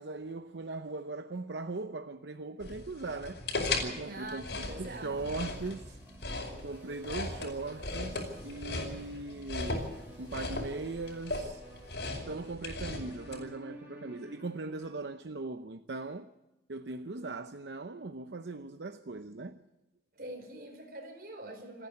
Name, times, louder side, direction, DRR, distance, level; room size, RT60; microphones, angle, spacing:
voice 1, 0.0-3.4 3.7-6.0 6.6-11.6 12.1-16.3 16.7-19.6, right 3 dB, 80° right, 0.8 m, -39 dB
sound 1, 2.6-13.4, left 2 dB, 80° left, 5.3 m, -37 dB
voice 2, 4.0-5.2 20.1-21.9, right 1 dB, 55° right, 4.6 m, -44 dB
sound 2, 4.6-14.9, equal, 10° right, 7.5 m, -53 dB
28.0 x 10.0 x 9.8 m
head